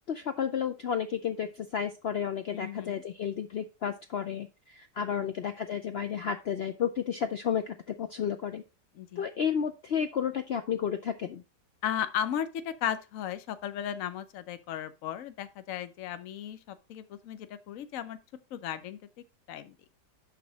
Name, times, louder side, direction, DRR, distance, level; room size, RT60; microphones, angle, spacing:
voice 1, 0.1-8.6 9.2-11.4, left 8 dB, 85° left, 0.5 m, -32 dB
voice 2, 2.5-3.0 5.1-5.3 9.0-9.2 11.8-18.2 18.5-19.0 19.5-19.8, left 10 dB, 60° left, 1.0 m, -35 dB
11.0 x 4.2 x 4.0 m
omnidirectional pair, 1.8 m